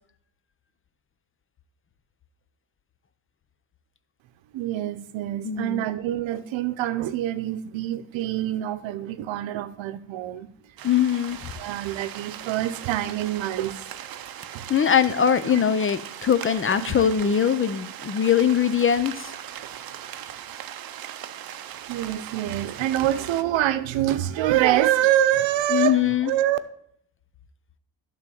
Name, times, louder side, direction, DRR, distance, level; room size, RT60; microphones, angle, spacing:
voice 1, 4.5-10.5 11.6-13.8 14.5-14.6 15.5-15.6 17.2-17.3 21.9-26.6, right 13 dB, 85° right, 0.8 m, -25 dB
voice 2, 5.4-5.9 10.8-11.4 14.7-19.3 25.7-26.3, left 8 dB, 30° left, 0.5 m, -22 dB
sound 1, 10.8-23.4, right 10 dB, 50° right, 0.7 m, -39 dB
11.5 x 3.9 x 7.0 m
cardioid pair, 115°, 44 cm